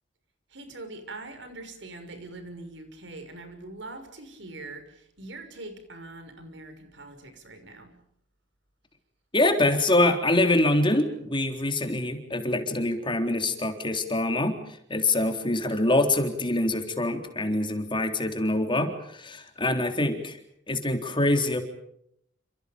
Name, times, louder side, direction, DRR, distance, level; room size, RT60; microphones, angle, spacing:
voice 1, 0.5-7.9, right 2 dB, 70° right, 8 dB, 6.3 m, -42 dB
voice 2, 9.3-14.6 14.9-20.4 20.7-21.6, left 2 dB, 25° left, 5 dB, 3.8 m, -25 dB
29.5 x 27.5 x 5.3 m, 0.72 s
head